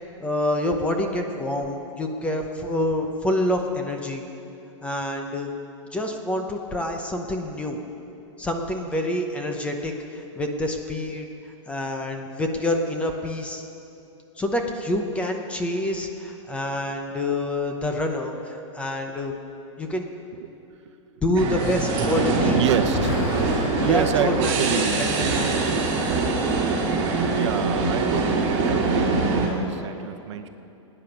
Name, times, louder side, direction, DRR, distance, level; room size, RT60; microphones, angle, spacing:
voice 1, 0.2-4.2 4.8-5.5 5.9-7.8 8.4-11.3 11.7-13.6 14.4-19.4 19.8-20.0 21.2-22.6 23.9-25.1 25.3-25.6, left 1 dB, 5° left, 3 dB, 0.8 m, -27 dB
sound 1, 21.3-29.5, right 3 dB, 35° right, 2.8 m, -23 dB
voice 2, 22.5-23.1 23.8-25.6 27.3-30.5, right 9 dB, 60° right, 8 dB, 0.9 m, -28 dB
Explosion, 22.9-25.0, left 2 dB, 50° left, 2.2 m, -31 dB
18.5 x 9.9 x 5.9 m, 2.7 s
supercardioid pair, 160°, 17 cm